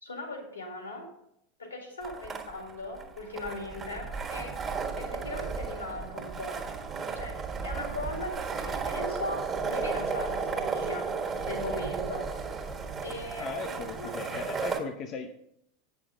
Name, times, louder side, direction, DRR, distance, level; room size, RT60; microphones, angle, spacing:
voice 1, 0.0-1.1 1.6-4.5 5.0-6.6 7.1-7.4 7.6-11.1 11.4-12.3 13.0-14.1, left 2 dB, 85° left, 3 dB, 2.0 m, -39 dB
sound 1, 2.0-14.8, right 5 dB, 25° right, 1.4 m, -34 dB
voice 2, 13.4-15.3, left 4 dB, 40° left, 6 dB, 0.6 m, -37 dB
8.5 x 6.2 x 5.1 m, 0.77 s
figure-of-eight pair, 80°, 0 cm